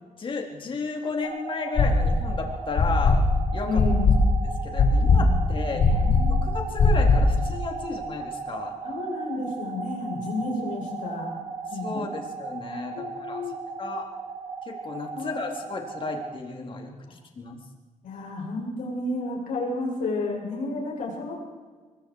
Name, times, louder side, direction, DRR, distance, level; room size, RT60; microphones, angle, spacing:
voice 1, 0.2-3.2 3.5-3.8 4.6-5.8 6.4-8.7 11.8-13.4 13.8-14.0 14.6-17.6, left 4 dB, 40° left, 2 dB, 3.9 m, -33 dB
sound 1, 1.2-16.3, right 5 dB, 75° right, 4.1 m, -37 dB
sound 2, 1.8-2.3 2.8-7.4, left 3 dB, 65° left, 6.1 m, -19 dB
voice 2, 3.6-4.1 5.7-6.3 8.8-11.3 11.7-12.1 12.9-13.5 15.1-15.4 18.0-21.3, left 2 dB, 80° left, -1 dB, 7.5 m, -31 dB
24.0 x 22.5 x 4.9 m, 1.4 s
cardioid pair, 125°, 13 cm